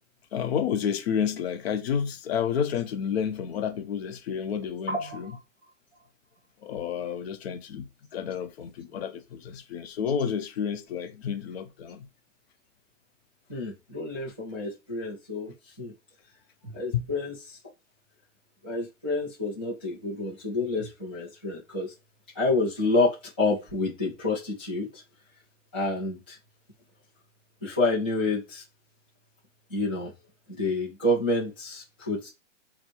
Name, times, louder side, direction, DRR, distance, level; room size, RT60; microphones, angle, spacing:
voice 1, 0.3-5.4 6.6-12.1 16.9-17.1, left 7 dB, 50° left, 0.7 m, -30 dB
voice 2, 4.9-5.4 13.5-15.9 16.6-17.6 18.6-21.9 22.3-25.0 25.7-26.4 27.6-28.6 29.7-30.1 30.5-32.3, left 2 dB, 10° left, 0.3 m, -29 dB
5.0 x 2.0 x 4.3 m
hypercardioid pair, 160°, 40 cm